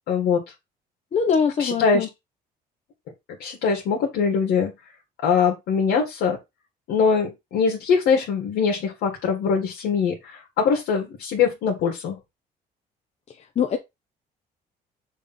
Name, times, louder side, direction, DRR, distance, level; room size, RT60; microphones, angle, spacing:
voice 1, 0.1-0.4 1.6-2.0 3.4-4.7 5.2-6.4 6.9-12.2, left 6 dB, 80° left, 2.0 m, -22 dB
voice 2, 1.1-2.1 13.6-13.8, left 6 dB, 40° left, 1.0 m, -22 dB
6.5 x 3.3 x 5.6 m
cardioid pair, 110°, 17 cm